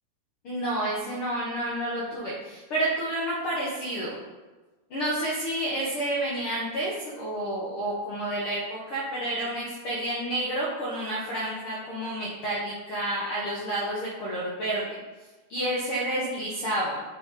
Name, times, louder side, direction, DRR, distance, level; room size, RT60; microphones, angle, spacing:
voice 1, 0.4-4.2 4.9-14.8 15.5-17.0, right 1 dB, 65° left, -6 dB, 1.4 m, -30 dB
8.7 x 4.3 x 3.8 m, 1.2 s
omnidirectional pair, 3.9 m